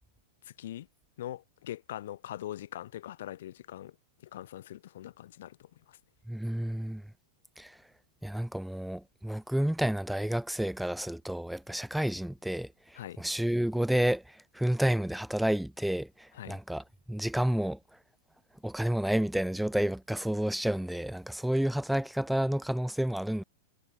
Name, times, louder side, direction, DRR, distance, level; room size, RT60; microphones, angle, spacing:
voice 1, 0.4-0.9 1.2-3.9 4.2-6.0 12.9-13.2 16.3-16.6, left 13 dB, 70° left, 1.4 m, -42 dB
voice 2, 6.3-7.0 7.6-7.8 8.2-17.8 18.6-23.4, right 1 dB, ahead, 0.4 m, -30 dB
hypercardioid pair, 105°, 0 cm